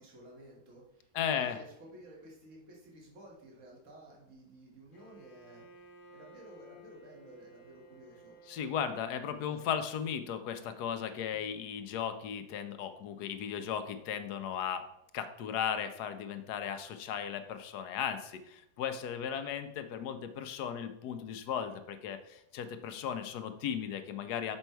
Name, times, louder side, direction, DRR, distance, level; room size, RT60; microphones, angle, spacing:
voice 1, 0.0-5.6 6.1-8.4 9.3-9.8, right 1 dB, 55° right, -3 dB, 2.0 m, -54 dB
voice 2, 1.1-1.6 8.5-14.9 15.1-24.6, left 8 dB, 85° left, 9 dB, 1.2 m, -36 dB
Bowed string instrument, 4.9-9.7, right 1 dB, 45° left, 0.8 m, -56 dB
6.2 x 5.4 x 4.5 m, 0.80 s
omnidirectional pair, 1.7 m